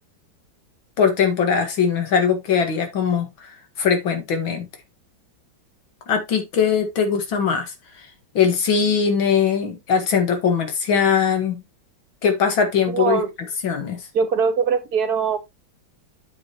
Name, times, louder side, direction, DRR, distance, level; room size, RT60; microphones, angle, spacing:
voice 1, 1.0-4.7 6.1-7.7 8.3-11.6 12.2-13.2 13.6-14.0, left 6 dB, 75° left, 2.6 m, -21 dB
voice 2, 12.9-13.3 14.1-15.4, right 6 dB, 55° right, 1.5 m, -21 dB
9.1 x 6.7 x 3.0 m
omnidirectional pair, 2.2 m